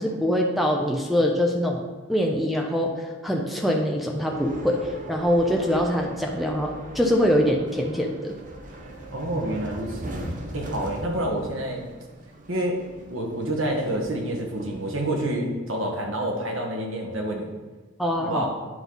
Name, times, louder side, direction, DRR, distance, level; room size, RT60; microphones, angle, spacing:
voice 1, 0.0-1.8 2.1-4.8 5.1-8.3 18.0-18.5, equal, ahead, 1 dB, 0.6 m, -23 dB
sound 1, 4.3-15.2, right 1 dB, 40° right, 0.9 m, -40 dB
voice 2, 9.1-10.2 10.5-11.9 12.5-12.8 13.1-17.5 18.2-18.5, right 1 dB, 80° right, 1 dB, 1.5 m, -28 dB
9.3 x 5.5 x 4.0 m, 1.3 s
head